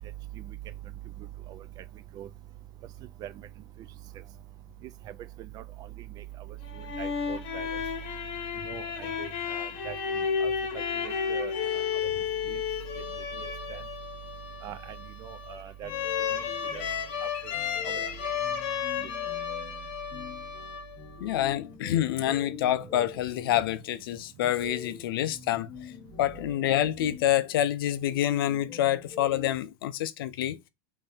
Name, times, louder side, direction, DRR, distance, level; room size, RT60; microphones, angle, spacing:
voice 1, 5.4-5.9 6.2-6.3 6.8-7.7 8.6-10.0 10.4-11.5 12.5-12.6 13.4-13.8 14.6-14.8 15.2-15.9 16.3-16.4 16.7-16.8 17.4-17.5 17.8-18.0, right 11 dB, 35° right, 0.3 m, -41 dB
sound 1, 6.6-21.3, left 7 dB, 50° left, 0.9 m, -33 dB
sound 2, 15.8-29.5, left 5 dB, 25° left, 0.6 m, -46 dB
voice 2, 21.2-25.9 26.2-30.6, left 12 dB, 80° left, 0.5 m, -27 dB
3.3 x 2.7 x 3.3 m
supercardioid pair, 130°, 12 cm